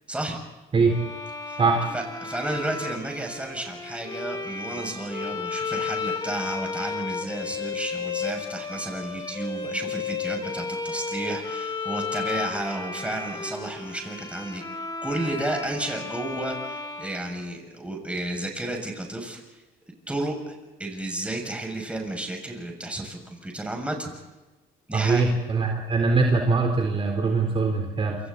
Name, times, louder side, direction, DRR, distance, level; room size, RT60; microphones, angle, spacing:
voice 1, 0.1-0.4 1.5-1.6 1.9-19.4 20.1-24.1 24.9-25.2, right 1 dB, 5° right, 2 dB, 6.8 m, -32 dB
Bowed string instrument, 0.9-17.8, left 4 dB, 25° left, 5.2 m, -33 dB
voice 2, 24.9-28.2, right 4 dB, 35° right, 2 dB, 3.9 m, -22 dB
28.5 x 27.0 x 4.2 m, 1.1 s
cardioid pair, 110°, 17 cm